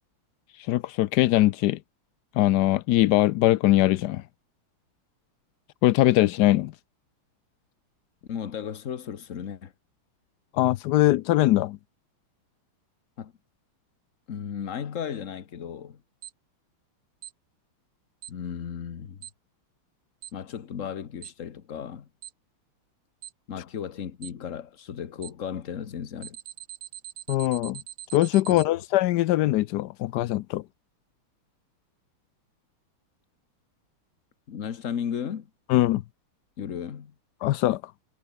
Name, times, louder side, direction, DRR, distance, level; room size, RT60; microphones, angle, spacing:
voice 1, 0.7-1.8 2.4-4.2 5.8-6.7 10.5-11.8 27.3-27.8 28.1-30.6 35.7-36.0 37.4-37.8, left 15 dB, 85° left, 0.9 m, -21 dB
voice 2, 8.3-9.7 13.2-13.3 14.3-16.0 18.3-19.3 20.3-22.1 23.5-26.4 28.5-28.7 34.5-35.5 36.6-37.1, left 8 dB, 45° left, 1.3 m, -35 dB
Alarm, 16.2-16.3 17.2-17.3 18.2-18.3 19.2-19.3 20.2-20.3 21.2-21.3 22.2-22.3 23.2-23.3 24.2-24.3 25.2-25.3 26.2-28.7, right 12 dB, 70° right, 1.6 m, -41 dB
omnidirectional pair, 2.4 m